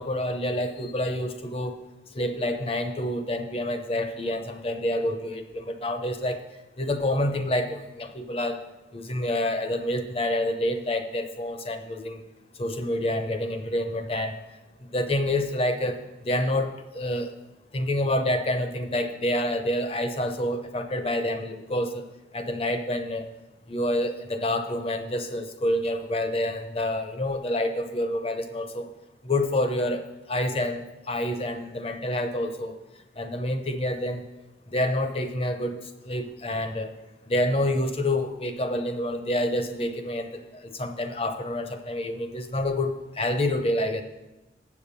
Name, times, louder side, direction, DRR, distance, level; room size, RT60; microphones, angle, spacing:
voice 1, 0.0-1.7 2.1-6.4 6.8-8.6 8.9-12.2 12.6-14.4 14.9-16.0 16.2-17.3 17.7-22.0 22.3-23.3 23.7-28.9 29.2-30.0 30.3-32.8 33.2-34.2 34.7-35.8 36.0-36.9 37.3-44.0, left 1 dB, 30° left, 7 dB, 0.7 m, -28 dB
7.5 x 7.1 x 6.7 m, 1.0 s
head